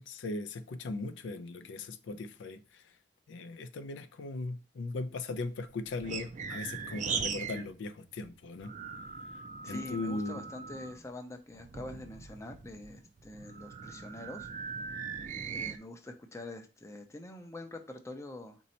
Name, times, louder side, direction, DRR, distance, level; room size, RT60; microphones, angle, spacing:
voice 1, 0.0-2.8 3.3-8.7 9.7-10.5, left 3 dB, 80° left, 0.4 m, -38 dB
sound 1, 5.4-7.7 8.0-11.1 11.5-15.8, right 6 dB, 40° right, 0.4 m, -40 dB
voice 2, 9.6-14.5 15.5-18.6, left 2 dB, 15° left, 0.5 m, -45 dB
4.1 x 2.7 x 4.2 m
head